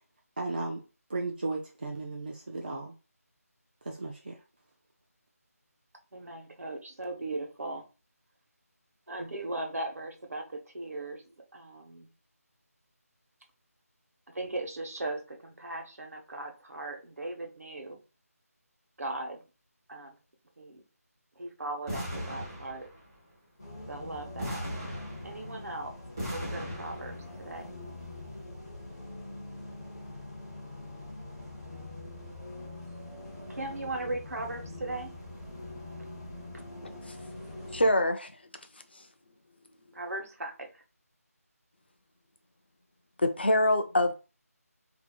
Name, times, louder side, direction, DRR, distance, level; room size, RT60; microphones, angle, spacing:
voice 1, 0.4-0.8 1.1-2.9 3.8-4.3, right 2 dB, 35° right, 0.4 m, -35 dB
voice 2, 6.1-7.9 9.1-12.1 14.3-18.0 19.0-19.4 19.9-20.2 20.6-20.8 21.4-22.9 23.9-24.6 25.2-27.7 31.4-31.9 33.5-35.1 39.9-40.8, right 2 dB, 70° right, 1.1 m, -38 dB
sound 1, 21.9-23.1 24.4-25.7 26.2-27.3, equal, 15° right, 0.9 m, -38 dB
sound 2, 23.6-37.9, left 2 dB, 20° left, 0.8 m, -44 dB
voice 3, 37.7-38.3 43.2-44.1, left 1 dB, 40° left, 0.4 m, -24 dB
4.4 x 2.7 x 2.3 m
figure-of-eight pair, 175°, 9 cm